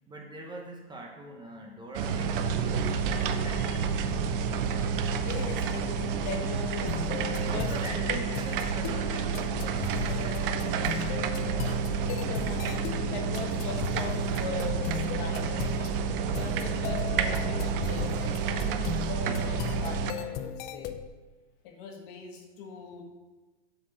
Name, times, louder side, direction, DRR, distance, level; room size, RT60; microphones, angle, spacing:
voice 1, 0.1-2.9 3.3-4.2 7.4-11.6, right 1 dB, 15° right, 1 dB, 0.8 m, -44 dB
sound 1, 1.9-20.1, right 5 dB, 55° right, 0.7 m, -29 dB
voice 2, 5.0-7.0 7.5-8.0 10.8-11.2 12.0-16.0 16.3-18.9 19.2-20.9 21.6-23.0, left 5 dB, 50° left, 3 dB, 1.7 m, -41 dB
sound 2, 6.9-21.1, left 9 dB, 30° left, 0.4 m, -38 dB
7.7 x 4.4 x 6.2 m, 1.2 s
hypercardioid pair, 125°, 34 cm